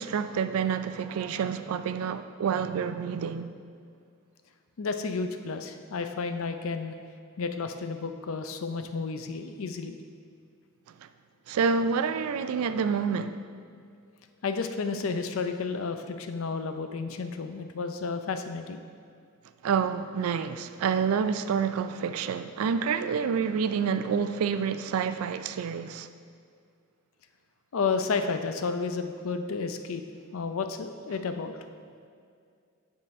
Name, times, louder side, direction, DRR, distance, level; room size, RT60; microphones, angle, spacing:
voice 1, 0.0-3.5 11.5-13.4 19.6-26.1, right 6 dB, 80° right, 0.3 m, -28 dB
voice 2, 4.8-7.0 7.4-10.0 14.4-18.8 27.7-30.0 30.3-31.6, left 4 dB, 70° left, 0.5 m, -31 dB
9.0 x 3.7 x 4.2 m
head